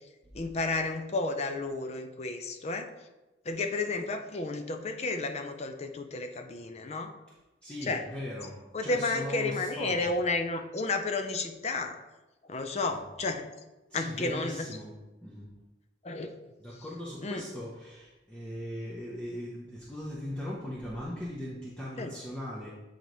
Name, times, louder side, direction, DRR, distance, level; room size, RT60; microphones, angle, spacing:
voice 1, 0.3-2.9 3.5-7.1 7.8-8.0 8.7-12.0 12.5-13.5 13.9-14.7 16.0-16.3 17.2-17.4 22.0-22.1, left 3 dB, 35° left, 6 dB, 0.5 m, -32 dB
voice 2, 7.6-10.2 12.7-13.0 13.9-14.9 15.2-15.5 16.6-22.7, equal, 5° left, -7 dB, 0.8 m, -39 dB
8.4 x 4.0 x 3.1 m, 1.1 s
head